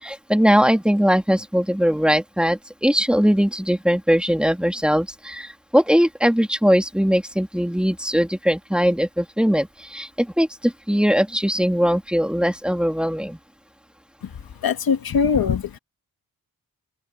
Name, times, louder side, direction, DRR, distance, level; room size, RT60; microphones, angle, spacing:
voice 1, 0.0-13.4, equal, 5° right, 2.8 m, -20 dB
voice 2, 14.6-15.8, left 6 dB, 85° left, 1.9 m, -21 dB
open air
cardioid pair, 70°, 35 cm